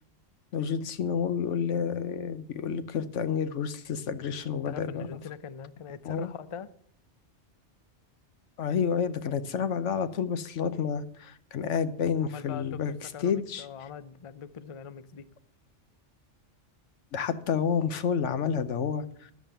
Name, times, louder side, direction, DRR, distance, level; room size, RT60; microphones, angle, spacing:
voice 1, 0.5-5.1 6.1-6.3 8.6-12.9 13.2-13.7 17.1-19.0, left 7 dB, 80° left, 1.1 m, -29 dB
voice 2, 4.6-6.7 12.2-15.3, left 7 dB, 45° left, 0.4 m, -42 dB
11.0 x 7.5 x 6.7 m
omnidirectional pair, 1.2 m